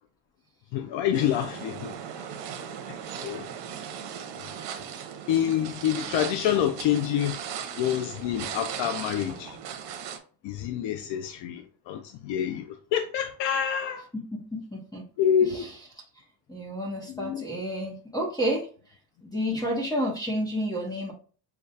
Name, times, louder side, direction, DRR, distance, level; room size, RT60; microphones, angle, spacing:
voice 1, 0.7-2.3 2.9-3.4 5.3-7.4 7.7-9.6 10.4-14.0 15.2-15.7 17.1-17.4, left 9 dB, 90° left, 0.6 m, -27 dB
sound 1, 1.1-10.2, right 8 dB, 80° right, 0.9 m, -38 dB
voice 2, 14.1-15.1 15.4-15.7 16.1-19.0 19.2-21.1, equal, 10° left, 1.0 m, -31 dB
6.7 x 2.4 x 2.7 m
cardioid pair, 155°, 42 cm